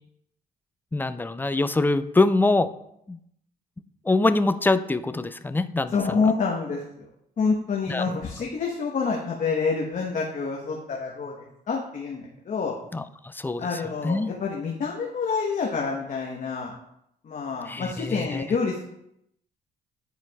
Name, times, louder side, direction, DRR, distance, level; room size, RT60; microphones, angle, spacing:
voice 1, 0.9-2.7 3.1-3.2 4.0-6.0 7.9-8.2 12.9-14.3 17.7-18.4, left 2 dB, 10° left, 12 dB, 0.4 m, -24 dB
voice 2, 5.9-6.8 7.4-12.7 13.6-16.7 17.2-18.9, left 5 dB, 50° left, -1 dB, 1.1 m, -27 dB
9.7 x 4.6 x 2.3 m, 0.77 s
supercardioid pair, 70°, 17 cm